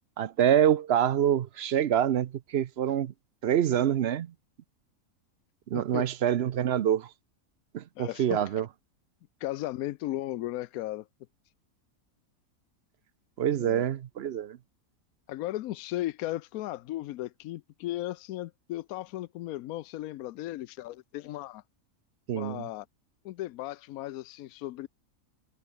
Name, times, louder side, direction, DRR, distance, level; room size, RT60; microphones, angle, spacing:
voice 1, 0.2-3.1 3.4-4.3 5.7-7.1 7.7-8.7 13.4-14.6 22.3-22.6, right 10 dB, 60° right, 0.8 m, -26 dB
voice 2, 5.7-6.0 8.0-8.4 9.4-11.1 13.6-13.9 15.3-21.6 22.3-22.9 23.2-24.9, left 15 dB, 80° left, 1.1 m, -36 dB
omnidirectional pair, 1.5 m